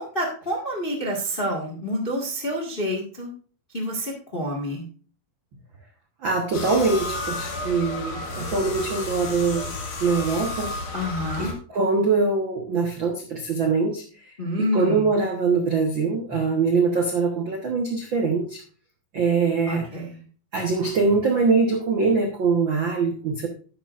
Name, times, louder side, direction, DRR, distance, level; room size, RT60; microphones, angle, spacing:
voice 1, 0.0-3.3 3.7-4.8 10.9-11.5 14.4-15.1 19.7-20.2, equal, 30° left, 0 dB, 0.9 m, -28 dB
voice 2, 6.2-9.7 10.0-10.7 11.4-14.0 14.6-18.6 19.1-19.8 20.5-23.5, right 4 dB, 75° right, 2 dB, 1.1 m, -23 dB
sound 1, 6.5-11.5, left 2 dB, 65° left, 3.3 m, -32 dB
12.5 x 9.9 x 2.5 m, 0.41 s
omnidirectional pair, 4.3 m